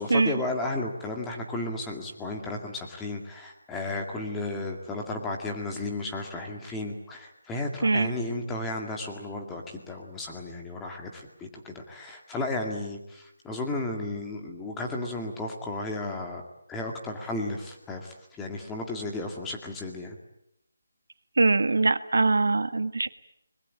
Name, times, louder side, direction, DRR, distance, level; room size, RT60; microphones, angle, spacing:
voice 1, 0.0-16.4 16.7-20.2, left 2 dB, 5° left, 1 dB, 2.1 m, -34 dB
voice 2, 21.4-23.1, right 3 dB, 80° right, 12 dB, 1.5 m, -22 dB
24.0 x 21.0 x 8.8 m, 0.78 s
figure-of-eight pair, 170°, 0 cm